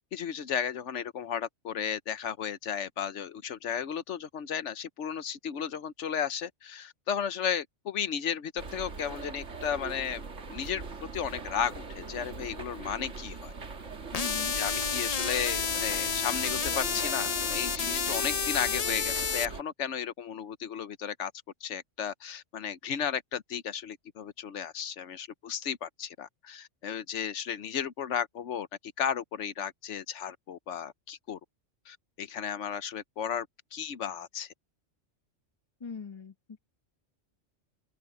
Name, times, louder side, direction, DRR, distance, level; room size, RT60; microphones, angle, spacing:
voice 1, 0.1-10.2 10.5-10.8 11.1-13.5 14.5-21.3 21.6-28.7 29.0-31.4 31.9-34.5, left 8 dB, 80° left, 1.1 m, -34 dB
sound 1, 8.6-19.6, right 4 dB, 85° right, 2.2 m, -41 dB
sound 2, 14.1-19.5, left 6 dB, 40° left, 0.6 m, -30 dB
voice 2, 14.1-14.6 35.8-36.6, left 5 dB, 25° left, 1.0 m, -41 dB
open air
omnidirectional pair, 1.2 m